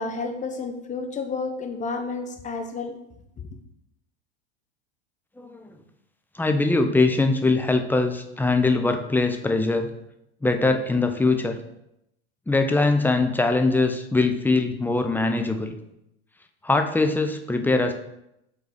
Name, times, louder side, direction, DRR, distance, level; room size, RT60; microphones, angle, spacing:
voice 1, 0.0-3.0, left 4 dB, 20° left, 4 dB, 1.0 m, -31 dB
voice 2, 5.4-5.7 6.3-9.9 10.4-11.5 12.5-15.7 16.6-17.9, left 3 dB, 5° left, 6 dB, 0.6 m, -22 dB
5.2 x 3.9 x 5.0 m, 0.82 s
hypercardioid pair, 95°, 33 cm